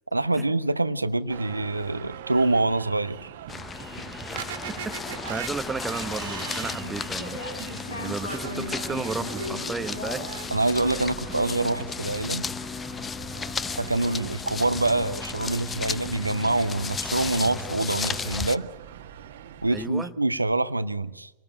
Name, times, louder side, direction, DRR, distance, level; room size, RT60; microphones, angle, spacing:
voice 1, 0.1-3.3 10.5-12.4 13.7-18.7 19.6-21.3, right 2 dB, 85° right, 13 dB, 0.8 m, -25 dB
sound 1, 1.3-19.9, right 10 dB, 55° right, 1.5 m, -41 dB
sound 2, 3.5-18.6, left 5 dB, 15° left, 0.8 m, -34 dB
voice 2, 4.8-10.4 19.7-20.1, right 4 dB, 15° right, 12 dB, 1.0 m, -34 dB
sound 3, 5.2-6.4 6.8-10.4, left 1 dB, 75° left, 4.6 m, -38 dB
25.0 x 19.0 x 8.7 m, 1.1 s
figure-of-eight pair, 90°, 0 cm